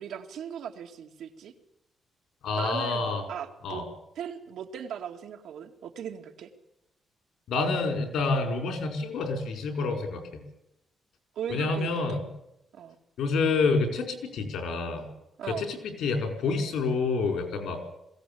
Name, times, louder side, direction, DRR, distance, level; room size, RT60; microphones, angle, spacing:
voice 1, 0.0-1.5 2.6-3.8 4.2-6.5 11.4-12.2 12.7-13.0 15.4-15.7, right 8 dB, 75° right, 4 dB, 2.3 m, -38 dB
voice 2, 2.4-3.2 3.6-3.8 7.5-10.2 11.5-12.2 13.2-15.1 15.5-17.8, left 4 dB, 80° left, 6 dB, 4.9 m, -28 dB
21.5 x 17.0 x 8.7 m, 0.86 s
cardioid pair, 175°, 0 cm